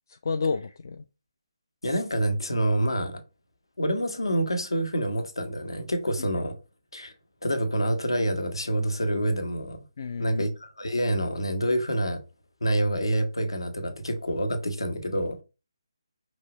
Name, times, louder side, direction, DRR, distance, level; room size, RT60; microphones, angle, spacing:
voice 1, 0.1-1.0 6.2-6.3 10.0-10.4, left 4 dB, 45° left, 0.3 m, -30 dB
voice 2, 1.8-3.2 3.8-6.5 6.9-7.1 7.4-9.8 10.2-12.2 12.6-15.4, right 1 dB, 70° left, 1.0 m, -27 dB
5.3 x 3.1 x 2.8 m
figure-of-eight pair, 145°, 3 cm